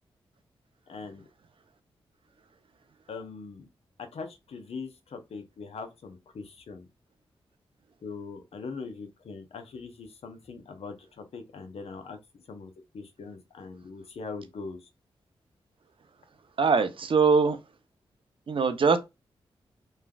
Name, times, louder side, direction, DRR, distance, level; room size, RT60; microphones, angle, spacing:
voice 1, 0.9-1.2 3.1-3.7 4.0-6.9 8.0-12.2 12.5-14.9, left 4 dB, 70° left, 0.7 m, -41 dB
voice 2, 16.6-17.6 18.5-19.0, right 5 dB, 55° right, 0.6 m, -22 dB
3.2 x 2.3 x 2.3 m
supercardioid pair, 45°, 11 cm